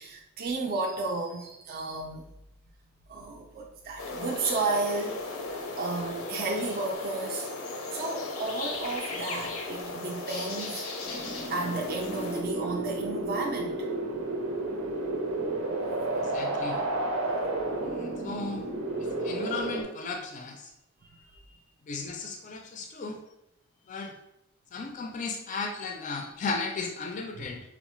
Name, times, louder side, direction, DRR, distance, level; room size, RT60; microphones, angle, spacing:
voice 1, 0.0-2.2 3.1-7.5 7.9-10.9 11.5-13.9 21.1-21.6, right 3 dB, 45° right, 0 dB, 0.4 m, -33 dB
sound 1, 4.0-12.4, left 3 dB, 90° left, 0.5 m, -36 dB
sound 2, 11.0-19.8, right 2 dB, 85° right, 0.6 m, -32 dB
voice 2, 16.1-16.8 17.8-18.7 19.0-20.7 21.8-23.2 23.9-24.2 24.7-27.6, left 4 dB, 35° left, 3 dB, 0.3 m, -35 dB
4.6 x 2.0 x 3.0 m, 0.84 s
head